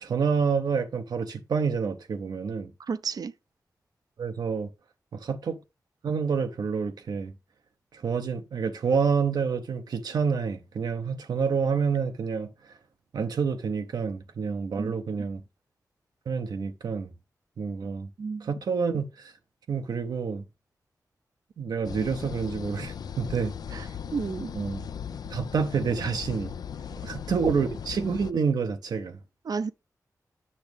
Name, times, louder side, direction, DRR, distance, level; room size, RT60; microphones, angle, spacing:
voice 1, 0.0-2.7 4.2-4.7 5.1-5.6 6.0-7.3 7.9-12.5 13.1-15.4 16.3-17.1 17.6-18.1 18.4-19.3 19.7-20.4 21.6-23.8 24.5-24.8 25.3-26.5 27.1-29.2, right 5 dB, 90° right, 0.9 m, -28 dB
voice 2, 2.8-3.3 14.8-14.9 18.2-18.5 23.7-24.5 29.4-29.7, right 5 dB, 70° right, 0.5 m, -32 dB
sound 1, 21.8-28.3, left 8 dB, 80° left, 0.4 m, -38 dB
8.6 x 6.0 x 3.4 m
wide cardioid pair, 70°, 7 cm